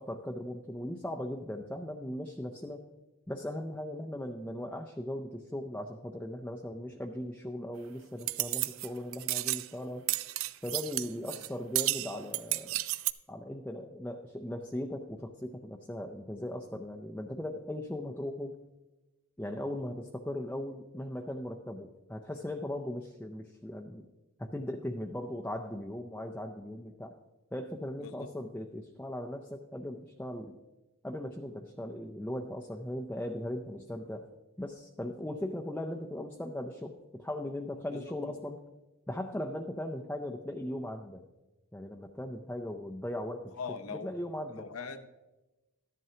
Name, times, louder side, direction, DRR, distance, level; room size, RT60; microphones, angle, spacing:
voice 1, 0.0-2.8 3.3-10.1 10.6-12.8 13.3-18.6 19.4-24.1 24.4-27.1 27.5-30.6 31.0-34.3 34.6-38.6 39.1-41.2 41.7-43.5 43.9-44.7, left 1 dB, 5° left, 1 dB, 0.5 m, -38 dB
sound 1, 8.2-8.9 9.1-9.7 10.1-11.5 11.7-13.1, right 17 dB, 65° right, 0.3 m, -32 dB
voice 2, 28.0-28.3 37.9-38.4 43.5-44.2 44.5-45.1, left 5 dB, 70° left, 9 dB, 0.8 m, -42 dB
13.0 x 11.0 x 2.8 m, 1.1 s
head